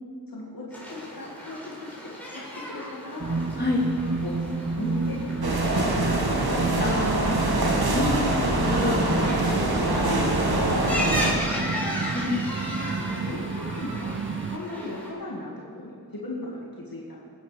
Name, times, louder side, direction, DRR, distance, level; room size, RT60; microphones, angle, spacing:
voice 1, 0.3-3.5 4.2-4.5 4.8-6.2 6.6-7.8 9.3-12.0 13.0-14.2 14.5-15.5 15.8-17.2, left 2 dB, 65° left, -4 dB, 2.3 m, -37 dB
sound 1, 0.7-15.1, equal, 5° left, 4.5 m, -36 dB
sound 2, 3.2-14.6, right 4 dB, 35° right, 0.6 m, -31 dB
sound 3, 5.4-11.3, right 2 dB, 80° right, 1.8 m, -24 dB
voice 2, 6.8-7.6 7.9-9.1 12.1-12.4, left 2 dB, 25° left, -4 dB, 3.7 m, -27 dB
21.5 x 9.1 x 5.2 m, 2.4 s
wide cardioid pair, 50°, 37 cm